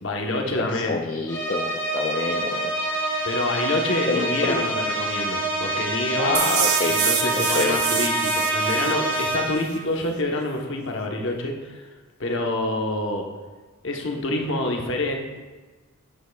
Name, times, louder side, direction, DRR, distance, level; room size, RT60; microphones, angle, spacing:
voice 1, 0.0-1.0 3.2-6.4 6.9-11.8 12.2-13.3 13.8-15.2, left 2 dB, 55° left, 1 dB, 1.0 m, -27 dB
voice 2, 0.7-2.7 4.1-4.7 6.2-7.0 7.3-7.8, left 3 dB, 35° left, 0 dB, 0.5 m, -27 dB
sound 1, 1.3-9.8, right 2 dB, 15° left, 1.8 m, -26 dB
sound 2, 6.3-9.4, right 10 dB, 80° right, 0.6 m, -26 dB
9.2 x 8.2 x 2.3 m, 1.3 s
head